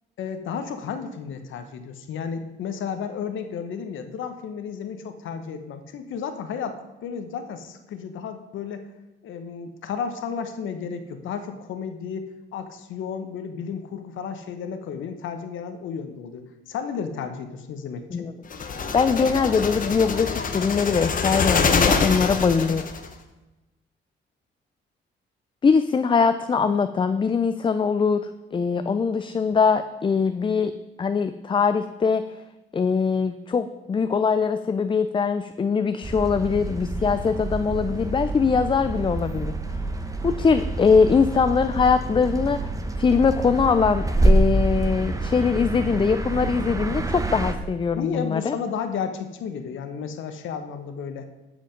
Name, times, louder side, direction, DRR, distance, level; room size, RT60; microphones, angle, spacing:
voice 1, 0.2-8.9 9.2-18.3 47.9-51.2, left 6 dB, 80° left, 8 dB, 1.1 m, -33 dB
sound 1, 18.5-23.1, left 5 dB, 45° left, 1.1 m, -25 dB
voice 2, 18.9-22.8 25.6-30.7 31.0-32.2 32.7-39.5 40.2-42.7 43.0-48.6, left 5 dB, 25° left, 10 dB, 0.4 m, -22 dB
sound 2, 36.0-47.5, right 2 dB, 15° right, 1.1 m, -26 dB
13.0 x 5.1 x 5.2 m, 1.1 s
cardioid pair, 90°, 20 cm